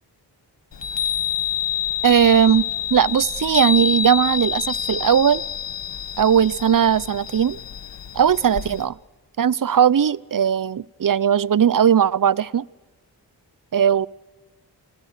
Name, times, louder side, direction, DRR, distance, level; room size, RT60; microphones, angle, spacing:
Chime, 0.7-8.8, left 8 dB, 75° left, 1.9 m, -27 dB
voice 1, 2.0-2.6 2.9-5.4 6.2-7.6 8.1-9.0 9.4-12.6 13.7-14.1, right 8 dB, 50° right, 0.7 m, -18 dB
28.0 x 20.5 x 6.6 m
wide cardioid pair, 65°, 43 cm